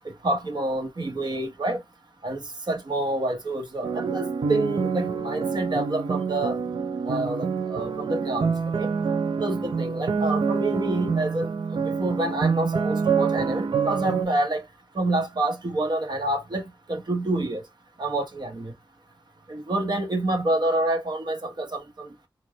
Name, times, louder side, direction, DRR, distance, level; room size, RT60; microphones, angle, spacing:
voice 1, 0.2-1.8 2.2-6.6 7.1-8.5 8.8-8.9 9.4-14.6 14.9-16.6 16.9-17.6 18.0-18.7 19.5-22.1, right 2 dB, 60° right, 1.1 m, -27 dB
Nostalgic Childhood - Grand Piano, 3.8-14.3, right 5 dB, 80° right, 0.5 m, -26 dB
4.1 x 2.3 x 3.2 m
wide cardioid pair, 60°, 8 cm